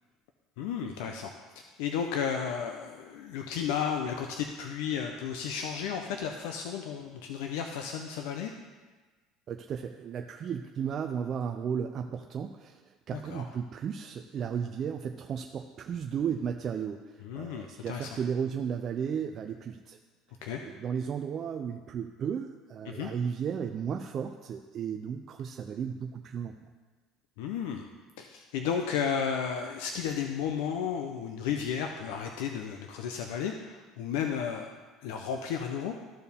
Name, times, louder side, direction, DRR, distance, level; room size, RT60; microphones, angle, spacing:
voice 1, 0.6-1.3 1.8-8.5 13.1-13.5 17.2-18.1 20.4-20.6 22.9-23.1 27.4-27.8 28.2-34.7 35.0-35.9, left 7 dB, 85° left, 4 dB, 0.6 m, -33 dB
voice 2, 9.5-12.8 13.1-17.0 17.3-20.0 20.6-26.5, right 7 dB, 40° right, 4 dB, 0.4 m, -34 dB
14.0 x 4.6 x 3.5 m, 1.3 s
cardioid pair, 135°, 0 cm